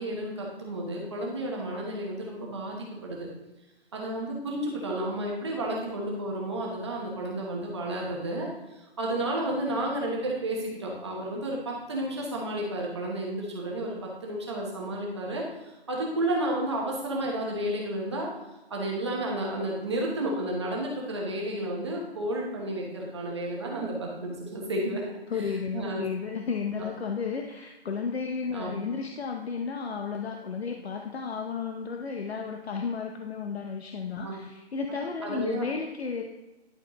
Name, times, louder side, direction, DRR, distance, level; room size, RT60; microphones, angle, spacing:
voice 1, 0.0-3.3 3.9-18.3 18.7-25.0 25.3-25.4 25.7-26.0 26.8-26.9 28.5-28.7 34.2-34.3 35.2-35.6, right 1 dB, 25° right, -2 dB, 1.0 m, -32 dB
voice 2, 25.3-36.2, left 5 dB, 70° left, 3 dB, 0.8 m, -33 dB
11.0 x 4.4 x 3.0 m, 1.0 s
hypercardioid pair, 170°, 32 cm